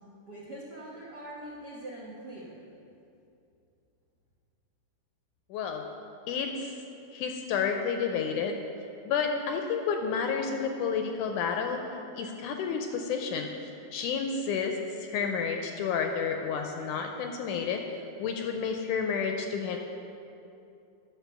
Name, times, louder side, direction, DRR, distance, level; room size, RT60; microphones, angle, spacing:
voice 1, 0.0-2.6, right 1 dB, 80° right, -5 dB, 0.9 m, -43 dB
voice 2, 5.5-5.8 6.3-6.8 7.1-8.6 9.1-11.8 12.2-13.5 13.9-17.8 18.2-19.8, left 6 dB, 80° left, 4 dB, 1.9 m, -30 dB
10.5 x 5.7 x 6.9 m, 2.7 s
omnidirectional pair, 3.9 m